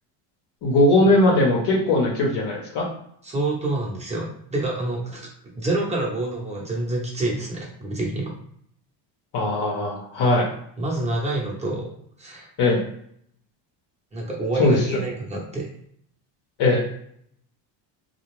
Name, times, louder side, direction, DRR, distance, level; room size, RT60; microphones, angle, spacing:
voice 1, 0.6-2.9 9.3-10.5 12.6-12.8 14.6-15.0 16.6-16.9, left 2 dB, 55° left, -2 dB, 0.9 m, -19 dB
voice 2, 3.2-5.3 5.5-8.3 10.8-11.9 12.2-12.5 14.1-15.7, right 2 dB, 15° right, -3 dB, 0.9 m, -27 dB
2.3 x 2.2 x 3.1 m, 0.68 s
supercardioid pair, 100°, 50 cm